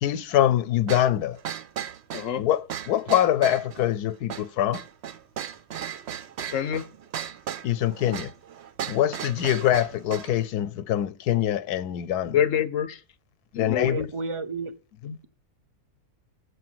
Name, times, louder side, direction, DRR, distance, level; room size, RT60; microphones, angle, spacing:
voice 1, 0.0-1.4 2.4-4.8 7.6-8.3 8.9-12.3 13.5-14.1, left 11 dB, 80° left, 1.2 m, -24 dB
sound 1, 0.9-10.4, right 9 dB, 55° right, 0.8 m, -36 dB
voice 2, 2.1-2.5 6.5-6.9 12.3-13.0 13.5-14.0 15.0-15.2, left 9 dB, 65° left, 1.0 m, -26 dB
voice 3, 13.7-14.7, right 3 dB, 25° right, 0.8 m, -32 dB
8.4 x 5.2 x 7.7 m
omnidirectional pair, 1.6 m